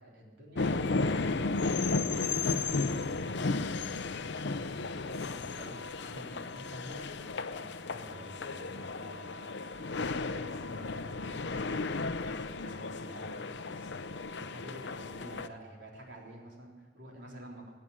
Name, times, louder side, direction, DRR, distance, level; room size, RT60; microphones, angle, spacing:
voice 1, 0.0-4.0 4.6-9.6 10.2-17.7, equal, 75° right, -1 dB, 3.6 m, -49 dB
sound 1, 0.5-15.5, left 3 dB, 70° left, 0.6 m, -34 dB
15.5 x 9.1 x 9.9 m, 1.4 s
head